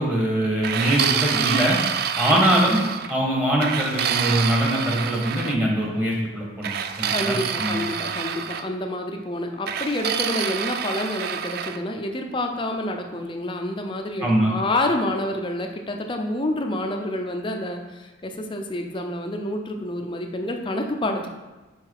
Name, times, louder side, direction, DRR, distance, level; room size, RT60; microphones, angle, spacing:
voice 1, 0.0-1.8 2.2-2.8 3.1-6.7 7.0-7.9 14.2-14.5, right 1 dB, 10° right, -3 dB, 1.3 m, -22 dB
sound 1, 0.6-3.1 3.6-5.6 6.6-8.7 9.7-11.8, right 8 dB, 55° right, 0.3 m, -27 dB
voice 2, 7.1-21.3, left 1 dB, 25° left, 3 dB, 0.6 m, -28 dB
5.3 x 4.8 x 4.8 m, 1.1 s
head